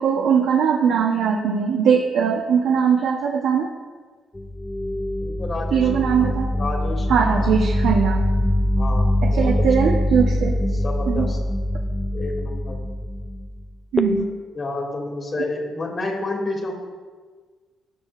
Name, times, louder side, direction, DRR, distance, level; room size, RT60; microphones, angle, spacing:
voice 1, 0.0-3.7 5.7-6.5 7.1-8.3 9.2-10.6 11.1-11.3 13.9-14.4, right 7 dB, 80° right, 0 dB, 0.8 m, -20 dB
sound 1, 4.3-13.6 14.0-14.2, left 1 dB, 10° left, 0.5 m, -23 dB
voice 2, 5.2-7.5 8.8-9.9 10.6-11.4 12.1-12.8 14.5-16.7, left 2 dB, 40° left, 0 dB, 2.3 m, -30 dB
17.0 x 6.3 x 2.4 m, 1.5 s
cardioid pair, 90°, 0 cm